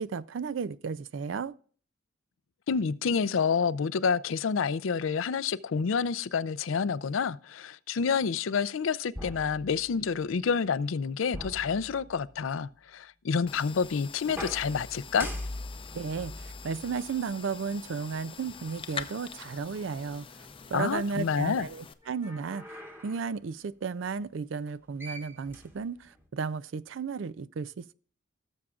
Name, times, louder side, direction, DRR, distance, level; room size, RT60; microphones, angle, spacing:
voice 1, 0.0-1.5 15.9-20.3 20.7-27.9, right 5 dB, 70° right, 0.4 m, -34 dB
voice 2, 2.7-15.3 20.7-21.7, left 6 dB, 90° left, 0.5 m, -28 dB
sound 1, 9.1-10.2 11.3-12.5 14.3-17.8 18.7-18.8 22.0-23.3 24.7-24.8 25.0-26.3, left 1 dB, 10° right, 1.3 m, -42 dB
sound 2, 13.5-21.9, left 6 dB, 25° left, 0.6 m, -45 dB
17.5 x 7.1 x 2.4 m
head